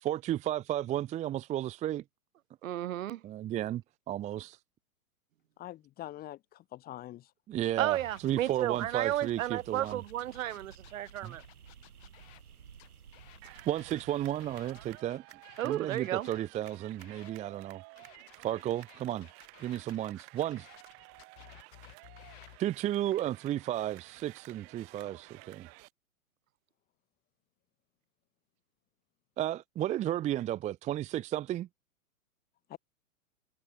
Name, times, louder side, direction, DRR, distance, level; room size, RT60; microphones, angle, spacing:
voice 1, 0.0-2.0 3.2-4.6 7.5-10.0 11.2-11.4 13.7-15.2 15.6-17.8 18.4-19.3 19.6-20.7 22.6-25.7 29.4-31.7, right 12 dB, 15° right, 0.7 m, -33 dB
voice 2, 2.6-3.2 7.8-11.4 15.6-16.3, right 13 dB, 65° right, 1.5 m, -33 dB
voice 3, 5.6-7.3 32.7-32.8, left 14 dB, 20° left, 1.0 m, -44 dB
sound 1, 7.6-12.4 12.8-17.3 18.0-22.6, left 26 dB, 45° left, 7.4 m, -57 dB
sound 2, 7.7-15.0, right 7 dB, 85° right, 5.6 m, -54 dB
sound 3, 13.4-25.9, right 36 dB, 35° right, 2.3 m, -53 dB
hypercardioid pair, 130°, 43 cm